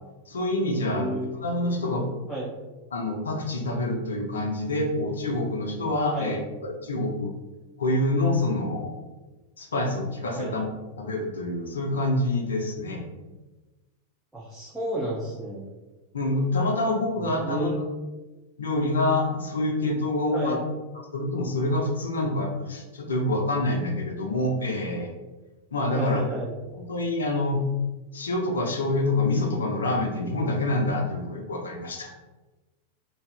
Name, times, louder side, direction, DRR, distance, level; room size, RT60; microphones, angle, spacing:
voice 1, 0.3-2.1 2.9-7.3 7.8-8.9 9.6-10.7 11.0-13.1 16.1-17.7 18.6-20.6 21.1-25.1 25.7-26.2 26.7-27.6 28.1-32.1, left 2 dB, 70° left, 2 dB, 0.5 m, -26 dB
voice 2, 0.8-1.5 2.3-2.5 6.1-6.4 10.3-10.6 14.3-15.7 17.2-17.9 20.3-20.6 25.9-26.5, right 2 dB, 5° right, -7 dB, 0.6 m, -31 dB
2.7 x 2.4 x 3.3 m, 1.2 s
figure-of-eight pair, 90°, 0 cm